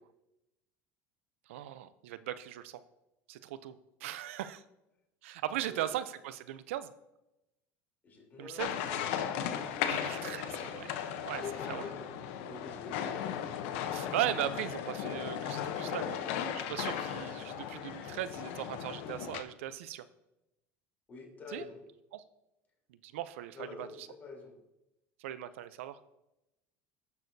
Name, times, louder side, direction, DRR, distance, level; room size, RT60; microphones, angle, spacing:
voice 1, 1.5-2.8 3.3-4.6 5.2-6.9 8.4-8.8 9.9-10.9 11.2-11.4 11.7-11.8 13.9-16.2 16.5-20.1 21.5-21.6 22.1-22.2 22.9-24.1 25.2-26.0, right 12 dB, 90° right, 14 dB, 0.5 m, -38 dB
voice 2, 5.5-5.9 8.0-9.9 11.3-13.6 21.1-21.8 23.5-24.5, left 4 dB, 25° left, -1 dB, 3.2 m, -47 dB
sound 1, 8.6-19.4, left 9 dB, 80° left, 0.8 m, -36 dB
16.0 x 6.3 x 2.7 m, 0.93 s
supercardioid pair, 110°, 7 cm